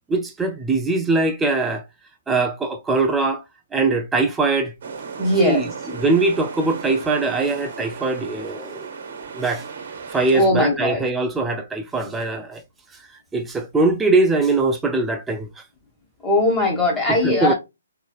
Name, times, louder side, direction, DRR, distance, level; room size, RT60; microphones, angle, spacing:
voice 1, 0.1-1.8 2.3-3.4 3.7-4.7 5.4-5.6 6.0-8.9 9.3-9.6 10.1-12.6 12.9-13.0 13.3-15.5 17.2-17.5, right 3 dB, 10° right, 0.4 m, -21 dB
sound 1, 4.8-10.5, right 5 dB, 55° right, 1.1 m, -35 dB
voice 2, 5.2-5.7 10.3-11.1 16.2-17.5, left 1 dB, 10° left, 1.4 m, -19 dB
3.8 x 3.1 x 2.3 m
hypercardioid pair, 140°, 0 cm